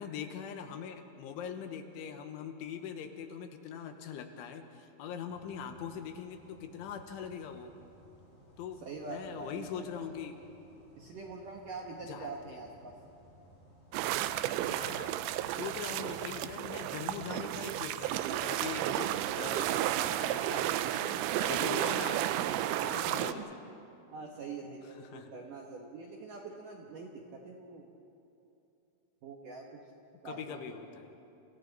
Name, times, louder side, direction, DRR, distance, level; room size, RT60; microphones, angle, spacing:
voice 1, 0.0-7.7 8.6-10.4 12.1-12.6 14.5-22.6 23.0-23.5 24.9-25.3 30.3-31.1, left 7 dB, 75° left, 6 dB, 3.5 m, -42 dB
sound 1, 5.3-20.5, equal, 50° left, 7.8 m, -60 dB
voice 2, 8.9-10.0 11.0-12.9 14.1-14.8 17.1-17.2 22.6-23.5 24.1-27.9 29.2-29.6 30.2-30.8, right 4 dB, 70° right, 0 dB, 2.0 m, -44 dB
sound 2, 13.9-23.3, right 13 dB, 90° right, 3.2 m, -32 dB
29.5 x 29.0 x 4.1 m, 2.8 s
omnidirectional pair, 5.6 m